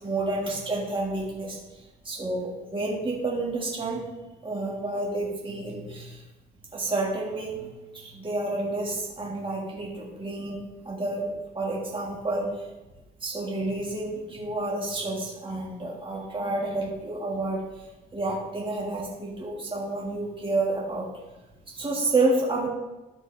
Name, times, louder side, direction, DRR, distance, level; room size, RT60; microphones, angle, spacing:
voice 1, 0.0-4.1 4.4-6.2 6.7-11.3 11.5-12.7 13.2-21.1 21.7-22.7, right 2 dB, 25° right, -4 dB, 2.0 m, -30 dB
13.0 x 4.6 x 3.4 m, 1.1 s
cardioid pair, 90°, 20 cm